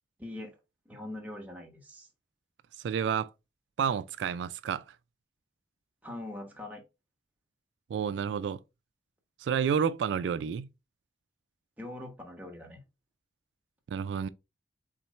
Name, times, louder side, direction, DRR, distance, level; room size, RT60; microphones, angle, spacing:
voice 1, 0.2-0.6 0.9-2.1 6.0-6.8 11.8-12.8, left 1 dB, 10° right, 1.0 m, -42 dB
voice 2, 2.8-3.3 3.8-4.8 7.9-8.6 9.4-10.7 13.9-14.3, right 7 dB, 85° right, 0.3 m, -30 dB
4.3 x 3.8 x 3.1 m
head